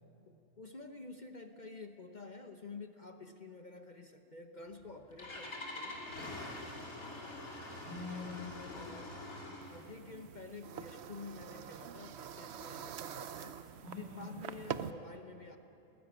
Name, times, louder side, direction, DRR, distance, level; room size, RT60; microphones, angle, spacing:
voice 1, 0.3-6.0 8.2-8.3 8.7-9.1 9.7-15.6, left 3 dB, 40° left, 6 dB, 0.9 m, -50 dB
Engine starting, 4.7-9.9, left 2 dB, 75° left, 3.1 m, -45 dB
voice 2, 6.4-7.0 7.7-8.6 9.7-10.1 13.8-14.4, left 3 dB, 85° right, -4 dB, 7.6 m, -47 dB
sound 1, 9.6-14.9, right 8 dB, 55° right, 0.8 m, -45 dB
20.0 x 15.5 x 9.4 m, 2.9 s
omnidirectional pair, 1.5 m